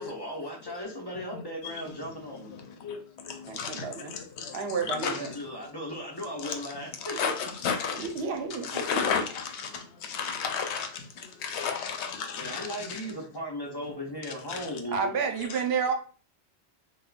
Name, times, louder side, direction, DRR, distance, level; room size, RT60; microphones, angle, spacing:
voice 1, 0.0-2.6 4.9-7.3 12.3-15.2, equal, 25° left, 0.6 m, -37 dB
voice 2, 1.3-1.9 2.3-5.4 6.4-6.7 7.0-8.1 8.5-13.1 14.5-14.8 15.5-15.6, left 6 dB, 80° left, 0.8 m, -34 dB
voice 3, 3.5-4.2 4.5-5.3 8.0-8.8 14.9-15.9, right 5 dB, 70° right, 0.8 m, -30 dB
3.5 x 2.2 x 2.4 m
omnidirectional pair, 1.1 m